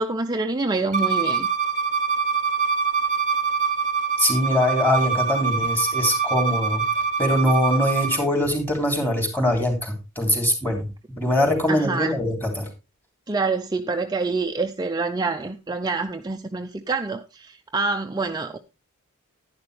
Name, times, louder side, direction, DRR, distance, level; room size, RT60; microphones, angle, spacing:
voice 1, 0.0-1.5 11.7-12.1 13.3-18.6, right 3 dB, 20° right, 0.5 m, -26 dB
Bowed string instrument, 0.9-8.2, right 5 dB, 35° right, 1.0 m, -24 dB
voice 2, 4.2-6.8 7.2-10.8 11.2-12.6, left 1 dB, 10° left, 3.3 m, -22 dB
11.0 x 10.5 x 3.2 m
head